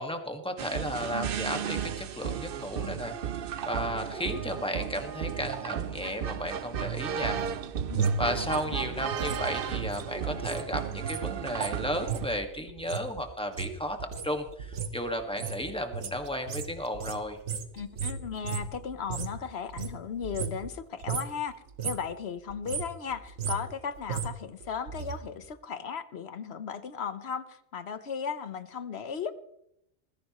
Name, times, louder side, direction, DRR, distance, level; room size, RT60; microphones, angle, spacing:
voice 1, 0.0-3.2 3.6-7.4 8.2-14.0 14.2-17.4, equal, 5° left, 4 dB, 1.7 m, -34 dB
sound 1, 0.6-12.3, right 9 dB, 60° right, 0.8 m, -34 dB
sound 2, 7.1-10.7 10.9-19.4 19.7-20.8 21.0-21.4 21.7-22.1 22.5-25.2 25.4-25.5, right 6 dB, 85° right, 1.4 m, -35 dB
voice 2, 7.9-8.9 17.7-21.5 21.8-29.3, left 6 dB, 65° left, 12 dB, 1.2 m, -36 dB
20.5 x 15.0 x 3.1 m, 0.76 s
omnidirectional pair, 1.2 m